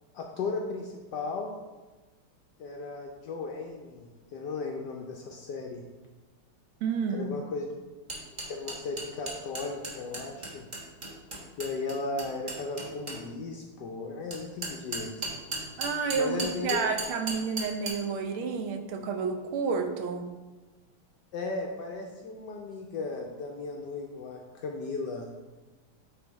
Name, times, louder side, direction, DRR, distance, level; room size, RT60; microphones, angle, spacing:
voice 1, 0.1-1.5 2.6-5.8 7.1-7.7 8.5-10.7 11.6-15.1 16.2-16.9 21.3-25.3, left 3 dB, 75° left, 1 dB, 1.0 m, -36 dB
voice 2, 6.8-7.3 15.8-20.2, right 5 dB, 75° right, 5 dB, 1.5 m, -30 dB
sound 1, 8.1-13.2 14.3-17.9, right 2 dB, 30° right, 0.9 m, -35 dB
8.0 x 3.4 x 4.6 m, 1.2 s
omnidirectional pair, 2.4 m